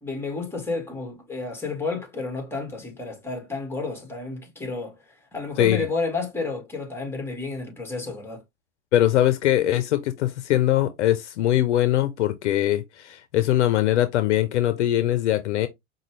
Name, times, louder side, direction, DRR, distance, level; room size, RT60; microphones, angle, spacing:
voice 1, 0.0-8.4, left 3 dB, 5° left, 1.7 m, -31 dB
voice 2, 8.9-15.7, left 13 dB, 80° left, 0.6 m, -22 dB
5.1 x 2.3 x 3.1 m
hypercardioid pair, 95°, 34 cm